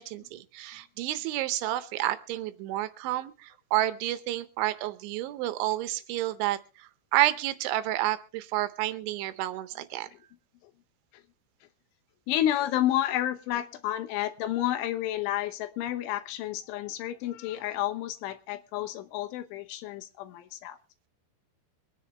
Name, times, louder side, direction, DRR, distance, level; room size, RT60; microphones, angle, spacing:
voice 1, 0.0-10.1, right 15 dB, 80° right, 13 dB, 3.1 m, -30 dB
voice 2, 12.3-20.8, left 13 dB, 80° left, 11 dB, 3.3 m, -30 dB
24.5 x 9.8 x 3.3 m, 0.33 s
omnidirectional pair, 5.7 m